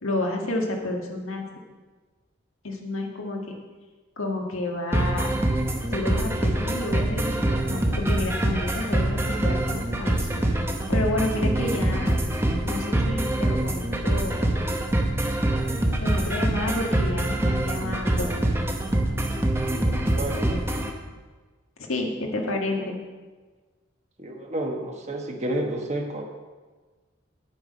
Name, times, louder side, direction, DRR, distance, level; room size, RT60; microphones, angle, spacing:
voice 1, 0.0-1.5 2.6-3.6 4.2-5.3 5.9-10.3 10.9-12.1 12.6-14.4 16.0-18.3 21.9-23.0, left 2 dB, 90° left, 1 dB, 1.7 m, -30 dB
sound 1, 4.9-20.9, right 1 dB, 10° right, 0.8 m, -25 dB
voice 2, 20.2-20.6 24.2-26.2, right 1 dB, 35° right, 2 dB, 1.3 m, -30 dB
9.5 x 8.1 x 5.3 m, 1.3 s
head